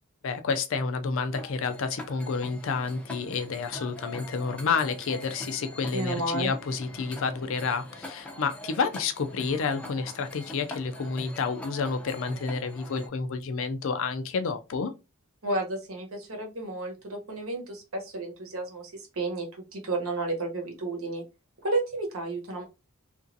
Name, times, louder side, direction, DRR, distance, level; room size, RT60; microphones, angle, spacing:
voice 1, 0.2-14.9, left 5 dB, 60° left, 0.4 m, -30 dB
sound 1, 1.3-13.1, left 1 dB, 5° left, 0.5 m, -42 dB
voice 2, 5.9-6.5 15.4-19.5 19.7-21.2 21.6-22.6, right 2 dB, 70° right, 1.0 m, -32 dB
2.9 x 2.5 x 2.6 m
head